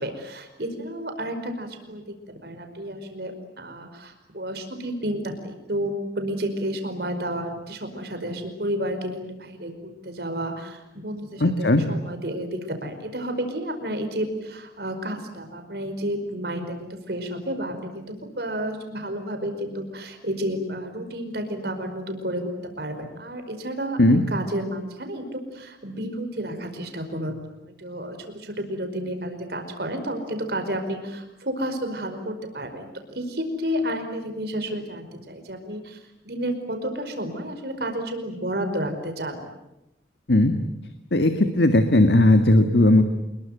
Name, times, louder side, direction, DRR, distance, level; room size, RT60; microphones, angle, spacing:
voice 1, 0.0-2.0 2.4-18.0 18.4-39.4, equal, 60° right, 6 dB, 5.1 m, -31 dB
voice 2, 11.4-11.8 24.0-24.2 40.3-40.5 41.1-43.1, left 1 dB, 65° left, 8 dB, 1.8 m, -17 dB
28.0 x 22.0 x 9.4 m, 0.90 s
head